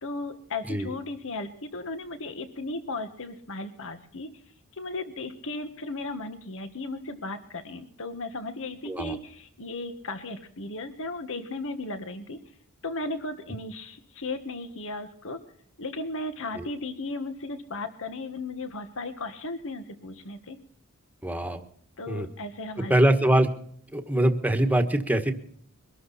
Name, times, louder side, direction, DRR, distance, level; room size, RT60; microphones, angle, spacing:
voice 1, 0.0-4.3 4.7-12.4 12.8-15.4 15.8-20.6 22.0-23.0, left 2 dB, 60° left, 9 dB, 1.6 m, -35 dB
voice 2, 21.2-21.6 22.1-22.3 22.8-23.5 23.9-25.3, right 1 dB, 5° right, 7 dB, 1.4 m, -23 dB
23.0 x 12.5 x 4.2 m, 0.62 s
head